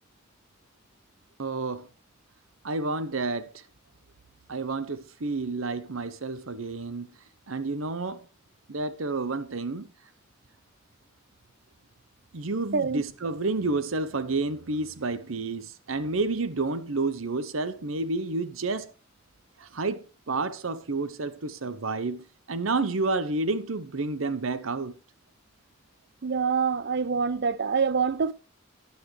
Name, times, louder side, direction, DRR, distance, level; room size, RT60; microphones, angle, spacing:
voice 1, 1.4-1.9 2.6-3.5 4.5-7.1 7.5-8.2 8.7-9.9 12.3-18.9 19.6-24.9, right 3 dB, 80° right, 0.9 m, -30 dB
voice 2, 26.2-28.3, right 5 dB, 55° right, 0.5 m, -25 dB
13.0 x 9.6 x 3.2 m
head